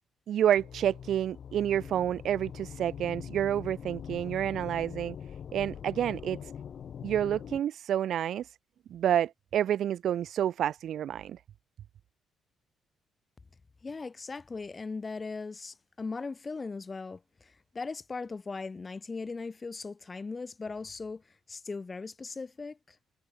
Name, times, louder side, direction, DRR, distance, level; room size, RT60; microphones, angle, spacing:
voice 1, 0.3-5.2 5.5-6.5 7.0-8.6 8.9-11.4, right 10 dB, 70° right, 0.6 m, -29 dB
sound 1, 0.6-7.6, left 8 dB, 55° left, 5.7 m, -43 dB
voice 2, 13.8-21.2 21.5-23.0, left 4 dB, 30° left, 2.6 m, -39 dB
cardioid pair, 90°, 0 cm